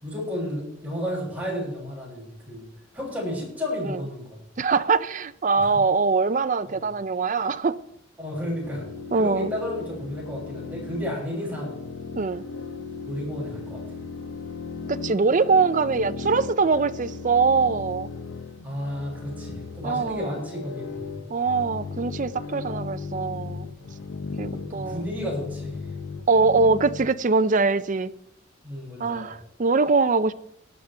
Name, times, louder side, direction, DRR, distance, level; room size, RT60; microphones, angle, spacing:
voice 1, 0.0-2.7 2.9-4.4 5.6-5.7 6.7-6.9 8.2-8.9 9.1-11.7 13.1-13.8 18.6-21.1 23.6-24.0 24.5-25.9 28.6-29.3, left 1 dB, 10° right, 6.8 m, -32 dB
voice 2, 4.6-7.8 9.1-9.5 12.2-12.4 14.9-18.1 19.8-20.3 21.3-23.7 24.4-25.0 26.3-28.1 29.0-30.3, right 4 dB, 40° right, 0.5 m, -23 dB
sound 1, 8.6-27.1, left 4 dB, 75° left, 0.9 m, -37 dB
18.0 x 11.5 x 3.5 m
head